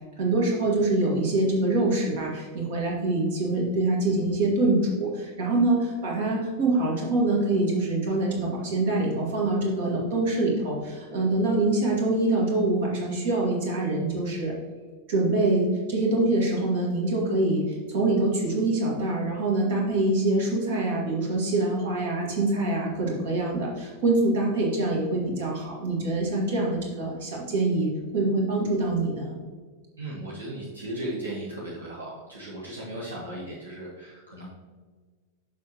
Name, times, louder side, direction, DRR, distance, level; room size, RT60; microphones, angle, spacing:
voice 1, 0.2-14.5 15.1-29.4, right 2 dB, 55° right, -2 dB, 2.1 m, -25 dB
voice 2, 30.0-34.5, right 1 dB, 75° right, -6 dB, 1.4 m, -36 dB
7.0 x 6.2 x 3.0 m, 1.5 s
figure-of-eight pair, 90°, 0 cm